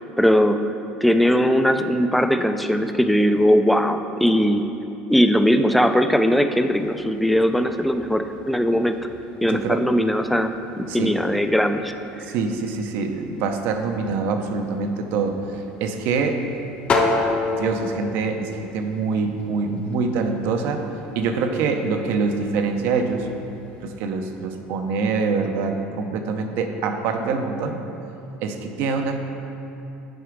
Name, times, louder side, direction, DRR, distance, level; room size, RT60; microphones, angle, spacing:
voice 1, 0.2-0.6 1.0-4.7 5.1-9.0 9.4-11.9, equal, ahead, 8 dB, 0.3 m, -19 dB
sound 1, 6.7-24.0, left 3 dB, 30° left, 0.7 m, -33 dB
voice 2, 9.5-9.8 10.9-11.2 12.2-15.4 15.8-16.4 17.6-20.9 21.2-23.3 23.8-27.8 28.4-29.2, right 4 dB, 65° right, 6 dB, 0.7 m, -25 dB
8.0 x 4.8 x 4.9 m, 2.9 s
cardioid pair, 140°, 4 cm